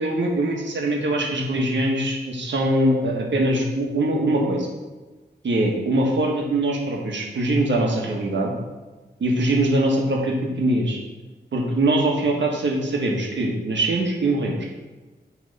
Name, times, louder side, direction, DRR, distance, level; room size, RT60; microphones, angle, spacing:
voice 1, 0.0-4.7 5.4-8.5 9.2-11.0 11.5-14.7, right 1 dB, 90° right, 0 dB, 1.4 m, -22 dB
8.4 x 3.6 x 5.4 m, 1.2 s
wide cardioid pair, 95°, 18 cm